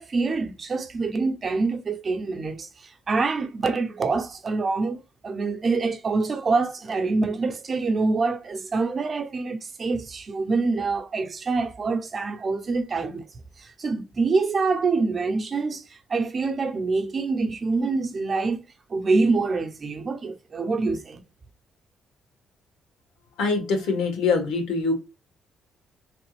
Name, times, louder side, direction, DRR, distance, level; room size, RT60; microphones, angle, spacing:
voice 1, 0.0-13.2 13.6-18.6 18.9-21.2, right 3 dB, 40° right, 0.8 m, -26 dB
voice 2, 23.4-24.9, left 4 dB, 90° left, 1.6 m, -24 dB
3.8 x 3.3 x 3.2 m
cardioid pair, 90°, 0 cm